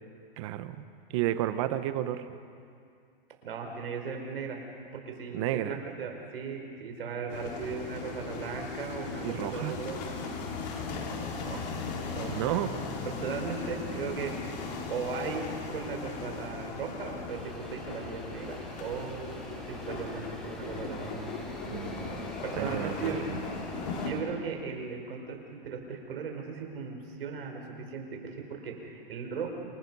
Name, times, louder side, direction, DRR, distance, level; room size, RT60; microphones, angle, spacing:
voice 1, 0.4-0.8 1.1-2.3 5.3-5.8 9.2-9.8 12.3-12.7 21.7-22.2 22.6-23.4, right 13 dB, 30° right, 11 dB, 0.9 m, -32 dB
voice 2, 3.4-4.6 4.9-9.9 11.4-11.7 12.1-12.4 13.0-14.5 14.9-21.2 22.4-23.2 24.0-29.5, right 5 dB, 75° right, 2 dB, 4.7 m, -37 dB
sound 1, 7.3-24.1, left 4 dB, 45° left, 3.6 m, -38 dB
sound 2, 17.3-24.2, equal, ahead, 2.0 m, -45 dB
28.0 x 20.5 x 5.5 m, 2.4 s
hypercardioid pair, 160°, 29 cm